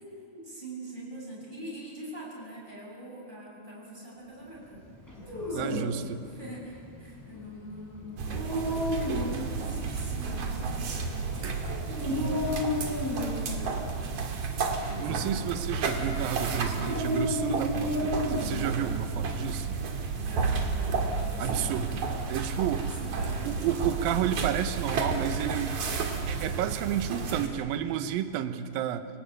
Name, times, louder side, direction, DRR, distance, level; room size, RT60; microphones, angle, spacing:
voice 1, 0.0-4.8 5.1-5.9 6.2-11.6 12.0-14.3 14.7-16.4 20.1-21.8 22.8-23.8, equal, 10° right, -4 dB, 7.9 m, -44 dB
Dog, 5.0-18.7, left 1 dB, 5° left, 6.1 m, -33 dB
voice 2, 5.5-6.2 12.1-12.4 15.0-19.8 21.4-22.0 22.3-22.9 23.4-25.8 26.3-29.1, right 10 dB, 70° right, 10 dB, 2.6 m, -31 dB
sound 1, 8.2-27.5, right 4 dB, 50° right, 3.1 m, -32 dB
29.5 x 19.0 x 8.9 m, 2.7 s
omnidirectional pair, 4.6 m